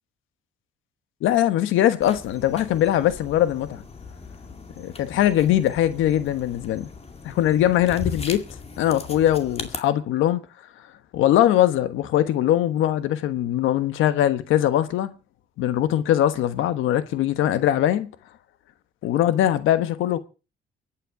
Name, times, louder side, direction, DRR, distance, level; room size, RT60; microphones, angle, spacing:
voice 1, 1.2-3.8 5.0-6.9 7.2-8.5 8.8-10.4 11.1-15.1 15.6-18.1 19.0-20.2, left 12 dB, 90° left, 1.3 m, -21 dB
sound 1, 2.0-9.8, left 4 dB, 30° left, 2.2 m, -38 dB
23.0 x 9.2 x 4.8 m
cardioid pair, 90°, 20 cm